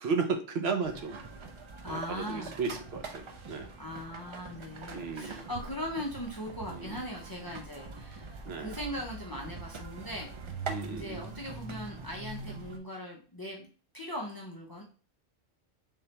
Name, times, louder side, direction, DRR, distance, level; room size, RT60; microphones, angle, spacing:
voice 1, 0.0-1.2 1.9-3.7 4.9-5.5 6.7-7.0 8.4-8.7 10.7-11.3, right 4 dB, 70° right, 5 dB, 0.8 m, -34 dB
sound 1, 0.8-12.8, right 3 dB, 55° right, 0.3 m, -43 dB
voice 2, 1.8-2.6 3.8-10.3 10.7-13.7 13.9-14.8, equal, 30° left, -1 dB, 0.5 m, -39 dB
3.7 x 3.2 x 2.8 m, 0.38 s
omnidirectional pair, 1.1 m